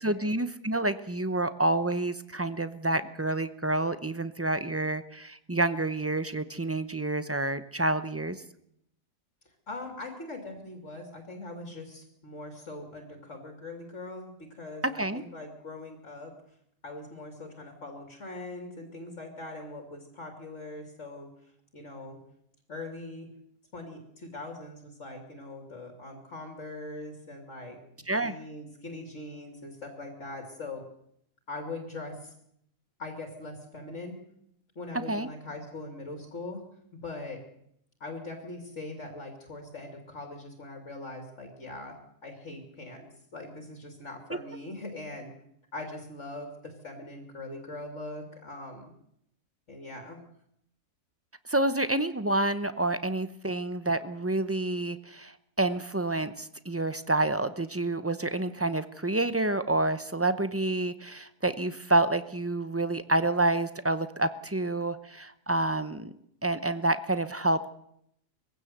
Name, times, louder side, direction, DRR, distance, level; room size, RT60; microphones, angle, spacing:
voice 1, 0.0-8.4 14.8-15.2 28.1-28.4 35.1-35.3 44.3-44.4 51.5-66.1 66.4-67.7, right 2 dB, 20° right, 12 dB, 0.4 m, -28 dB
voice 2, 9.7-16.3 16.8-21.3 21.7-22.2 22.7-23.3 23.7-27.8 28.2-30.8 31.5-32.3 33.0-34.2 34.7-36.6 37.0-37.4 38.0-42.0 42.2-45.3 45.7-48.8 49.7-50.2, left 2 dB, 50° left, 4 dB, 3.1 m, -41 dB
21.5 x 16.0 x 8.0 m, 0.75 s
omnidirectional pair, 1.6 m